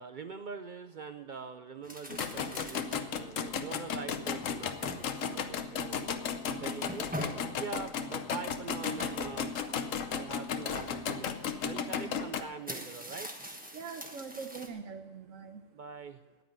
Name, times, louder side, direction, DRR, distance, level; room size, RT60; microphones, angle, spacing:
voice 1, 0.0-7.1 7.5-9.5 10.1-13.3 15.7-16.2, right 5 dB, 55° right, 9 dB, 0.6 m, -43 dB
sound 1, 1.8-3.1 3.6-3.7 4.3-5.4 6.6-7.5 8.8-9.4 10.5-11.0 12.0-12.1 12.5-14.7, equal, 5° right, 1.2 m, -43 dB
sound 2, 2.1-12.4, left 7 dB, 80° left, 1.2 m, -35 dB
voice 2, 11.9-12.2 13.7-15.6, right 5 dB, 85° right, 6 dB, 1.3 m, -43 dB
9.9 x 9.2 x 8.6 m, 1.2 s
omnidirectional pair, 1.3 m